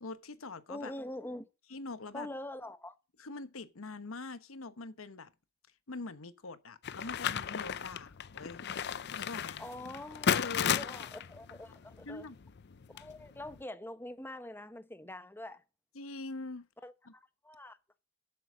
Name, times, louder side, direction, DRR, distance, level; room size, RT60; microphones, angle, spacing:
voice 1, 0.0-0.9 1.7-2.3 3.2-5.3 5.9-8.8 9.1-9.7 10.3-10.9 12.0-12.4 15.9-16.7 17.1-17.2, left 3 dB, 85° left, 1.1 m, -43 dB
voice 2, 0.7-1.5 2.1-2.9 9.6-12.3 12.9-15.6 16.8-17.8, left 1 dB, 10° left, 1.0 m, -44 dB
sound 1, 6.8-13.6, left 8 dB, 55° left, 0.5 m, -35 dB
11.5 x 7.9 x 6.2 m
head